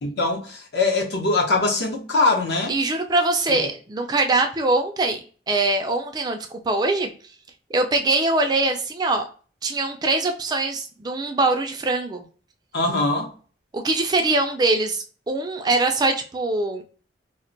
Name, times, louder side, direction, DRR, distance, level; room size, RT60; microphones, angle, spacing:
voice 1, 0.0-2.7 3.5-3.6 12.7-13.3, left 3 dB, 60° left, 0.8 m, -22 dB
voice 2, 2.7-5.2 5.5-7.1 7.7-9.2 9.6-12.2 13.7-16.8, right 2 dB, 20° right, 0.3 m, -22 dB
2.2 x 2.1 x 3.8 m
head